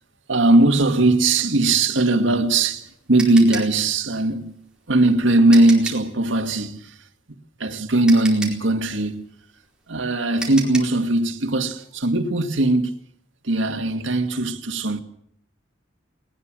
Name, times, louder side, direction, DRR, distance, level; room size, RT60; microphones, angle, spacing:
voice 1, 0.3-4.6 4.9-9.3 9.9-12.9 13.4-15.0, right 2 dB, 75° right, 2.0 m, -19 dB
sound 1, 2.3-6.1 7.6-7.7 8.1-11.0, right 3 dB, 5° right, 4.4 m, -34 dB
20.5 x 19.5 x 7.6 m
head